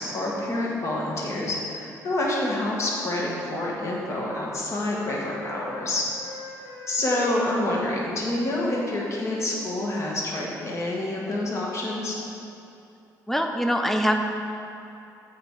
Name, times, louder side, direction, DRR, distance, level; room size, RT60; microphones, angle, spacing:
voice 1, 0.0-6.1 6.9-12.2, left 1 dB, 45° left, -3 dB, 1.4 m, -27 dB
Wind instrument woodwind instrument, 2.8-5.8 6.1-9.9, left 1 dB, 80° left, 1.4 m, -43 dB
voice 2, 13.3-14.2, equal, 5° left, 4 dB, 0.6 m, -23 dB
7.8 x 5.2 x 4.6 m, 2.7 s
cardioid pair, 105°, 7 cm